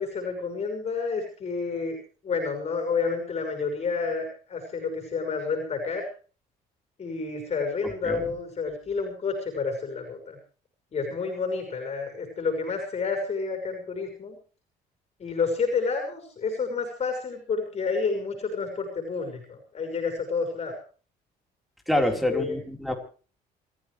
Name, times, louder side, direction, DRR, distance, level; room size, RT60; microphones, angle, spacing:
voice 1, 0.0-2.0 2.2-6.0 7.0-10.4 10.9-14.4 15.2-20.8 22.3-22.6, left 4 dB, 40° left, 3 dB, 6.2 m, -29 dB
voice 2, 21.9-22.9, left 1 dB, ahead, 3 dB, 4.3 m, -26 dB
27.5 x 15.0 x 3.3 m, 0.39 s
cardioid pair, 110°, 17 cm